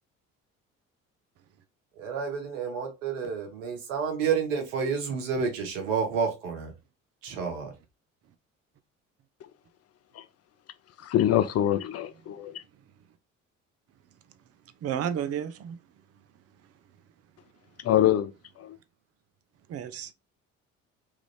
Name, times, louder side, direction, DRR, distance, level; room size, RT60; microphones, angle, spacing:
voice 1, 2.0-6.7 7.2-7.7, right 6 dB, 85° right, 1.0 m, -30 dB
voice 2, 11.0-12.6 17.8-18.8, left 12 dB, 40° left, 0.5 m, -25 dB
voice 3, 14.8-15.8 19.7-20.1, right 9 dB, 40° right, 0.5 m, -31 dB
3.2 x 2.5 x 3.2 m
hypercardioid pair, 60°, 38 cm